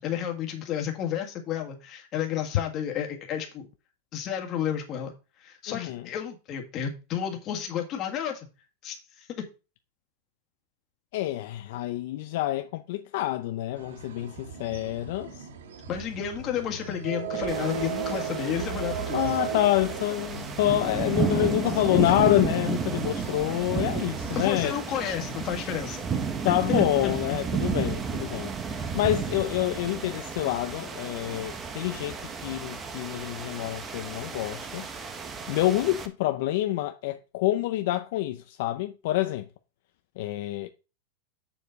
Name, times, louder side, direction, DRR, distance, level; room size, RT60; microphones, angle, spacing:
voice 1, 0.0-3.7 4.1-5.1 5.4-8.5 8.8-9.4 15.9-19.3 24.3-26.1 26.5-27.2, left 9 dB, 30° left, 1.8 m, -31 dB
voice 2, 5.7-6.0 11.1-15.5 19.1-24.8 26.4-28.5 28.9-34.9 35.5-39.5 40.2-40.7, left 15 dB, 55° left, 0.6 m, -27 dB
sound 1, 13.8-24.7, right 7 dB, 90° right, 1.5 m, -37 dB
sound 2, 17.5-36.1, right 5 dB, 15° right, 0.9 m, -32 dB
7.3 x 6.9 x 4.0 m
supercardioid pair, 160°, 0 cm